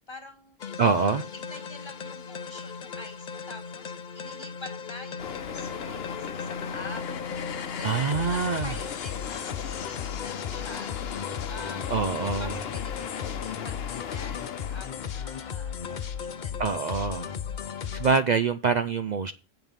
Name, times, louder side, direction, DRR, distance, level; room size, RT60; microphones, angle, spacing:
voice 1, 0.1-0.6 1.3-7.0 7.6-11.1 11.5-11.9 12.2-17.1, left 1 dB, 25° left, 5 dB, 1.6 m, -46 dB
sound 1, 0.6-18.2, left 7 dB, 55° left, 0.7 m, -36 dB
voice 2, 0.8-1.2 7.5-8.7 11.9-12.6 16.6-17.3 17.9-19.3, right 5 dB, 50° right, 10 dB, 0.7 m, -25 dB
sound 2, 5.2-15.4, left 8 dB, 75° left, 1.0 m, -38 dB
8.0 x 5.3 x 7.4 m, 0.32 s
omnidirectional pair, 1.0 m